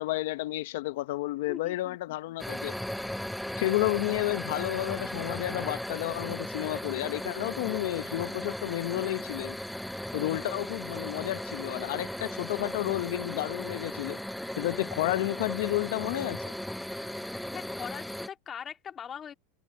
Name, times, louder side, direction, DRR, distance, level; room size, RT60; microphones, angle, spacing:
voice 1, 0.0-2.8 3.6-9.6 10.1-14.2 14.6-16.5, left 17 dB, 75° left, 1.0 m, -31 dB
voice 2, 1.5-2.0 3.3-3.4 17.5-19.3, left 8 dB, 30° left, 2.1 m, -41 dB
sound 1, 2.4-18.3, left 1 dB, ahead, 0.5 m, -37 dB
supercardioid pair, 120°, 0 cm